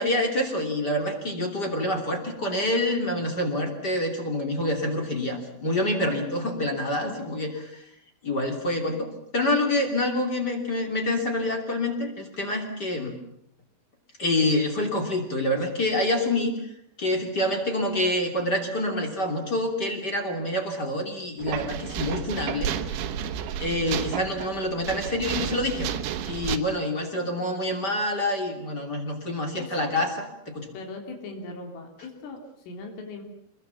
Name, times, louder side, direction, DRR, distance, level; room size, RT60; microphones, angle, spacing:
voice 1, 0.0-7.5 8.2-9.1 9.3-13.1 14.2-16.5 17.0-22.7 23.6-30.1 30.5-30.7, left 1 dB, 25° left, 3 dB, 2.7 m, -27 dB
voice 2, 7.0-7.4 29.6-29.9 30.7-33.2, left 3 dB, 85° left, 3 dB, 5.9 m, -39 dB
sound 1, 21.4-26.6, right 9 dB, 75° right, 3.5 m, -31 dB
26.5 x 21.5 x 7.3 m, 0.75 s
omnidirectional pair, 5.6 m